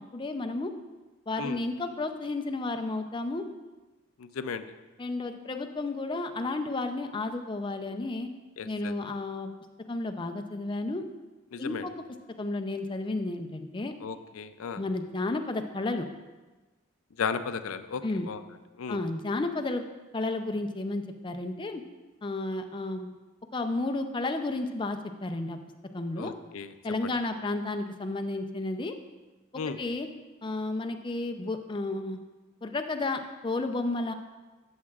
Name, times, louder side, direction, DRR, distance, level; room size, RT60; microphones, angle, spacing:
voice 1, 0.1-0.7 1.3-3.4 5.0-8.3 8.6-9.5 9.9-11.0 11.6-11.9 12.4-13.9 14.8-16.1 18.0-18.3 18.9-19.8 20.1-21.8 22.2-23.1 23.5-25.6 25.9-26.3 26.8-28.9 29.7-30.1 30.4-32.2 32.6-34.1, left 2 dB, 25° left, 6 dB, 0.5 m, -32 dB
voice 2, 4.2-4.6 8.6-8.9 11.5-11.8 14.0-14.8 17.2-18.4 18.8-19.0 26.2-26.7 27.0-27.1 29.5-29.8, left 5 dB, 85° left, 11 dB, 0.5 m, -35 dB
13.0 x 7.2 x 2.4 m, 1.2 s
head